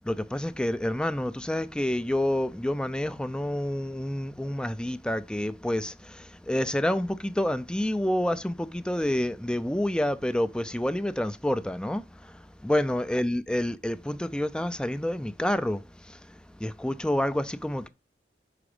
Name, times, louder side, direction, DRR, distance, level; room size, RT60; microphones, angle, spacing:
voice 1, 0.0-17.9, left 1 dB, 5° left, 0.3 m, -28 dB
6.1 x 4.9 x 4.8 m
head